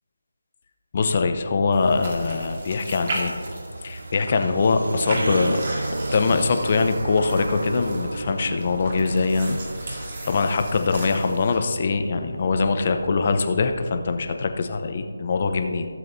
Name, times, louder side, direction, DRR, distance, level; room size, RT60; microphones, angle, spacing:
voice 1, 0.9-3.3 3.8-5.6 6.1-9.6 9.8-10.0 10.2-15.9, left 4 dB, 40° left, 6 dB, 0.8 m, -23 dB
sound 1, 1.7-11.6, right 1 dB, 40° right, 2.0 m, -36 dB
sound 2, 2.3-13.6, right 2 dB, 75° right, 0.4 m, -33 dB
16.0 x 7.6 x 2.7 m, 2.1 s
figure-of-eight pair, 160°, 0 cm